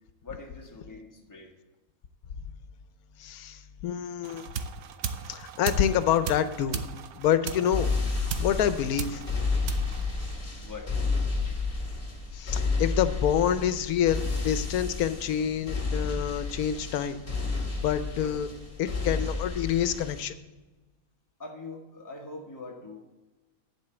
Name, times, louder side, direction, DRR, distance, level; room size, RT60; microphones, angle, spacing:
voice 1, 0.2-1.5 10.6-10.9 18.2-18.3 21.4-23.0, left 3 dB, 15° left, 1 dB, 1.4 m, -42 dB
voice 2, 3.2-4.4 5.3-6.8 7.1-9.2 12.3-17.2 17.5-18.5 18.8-20.3, left 9 dB, 90° left, 12 dB, 1.2 m, -27 dB
sound 1, 4.2-10.8, right 7 dB, 90° right, 1.2 m, -37 dB
sound 2, 7.7-20.2, left 4 dB, 35° left, 2.0 m, -31 dB
10.5 x 5.0 x 8.0 m, 1.2 s
omnidirectional pair, 1.5 m